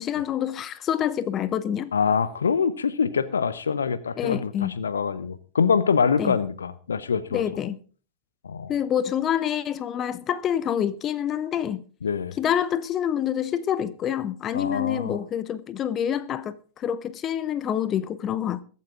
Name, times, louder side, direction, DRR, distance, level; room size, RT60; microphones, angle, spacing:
voice 1, 0.0-1.9 4.2-4.7 6.2-6.4 7.3-7.8 8.7-11.8 12.4-18.6, left 9 dB, 30° left, 0.7 m, -27 dB
voice 2, 1.9-7.4 8.4-8.7 12.0-12.3 14.5-15.2, left 6 dB, 70° left, 0.9 m, -25 dB
22.0 x 8.5 x 3.7 m
figure-of-eight pair, 90°, 0 cm